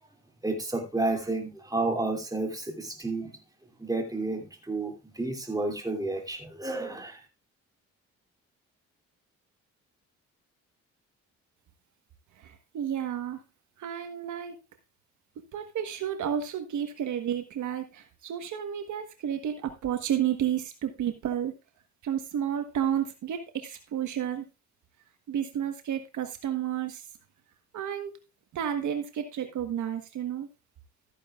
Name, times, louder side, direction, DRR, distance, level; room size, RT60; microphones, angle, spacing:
voice 1, 0.4-3.3 3.8-7.2, right 2 dB, 10° right, 3.0 m, -31 dB
voice 2, 12.4-13.4 13.8-14.6 15.5-21.5 22.0-24.4 25.3-27.0 27.7-28.1 28.5-30.5, right 9 dB, 70° right, 1.5 m, -31 dB
14.0 x 9.8 x 2.5 m
cardioid pair, 90°, 30 cm